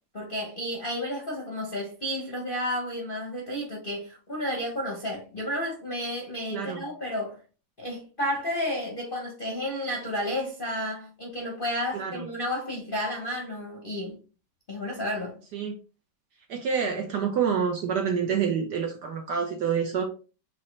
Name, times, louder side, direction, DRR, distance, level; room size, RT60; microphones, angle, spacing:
voice 1, 0.1-7.4 7.8-14.2 14.7-15.4, left 1 dB, 40° left, 0.7 m, -32 dB
voice 2, 6.5-6.8 11.9-12.3 15.5-15.7 16.5-20.0, right 7 dB, 65° right, 1.1 m, -27 dB
5.5 x 2.9 x 3.2 m
omnidirectional pair, 2.3 m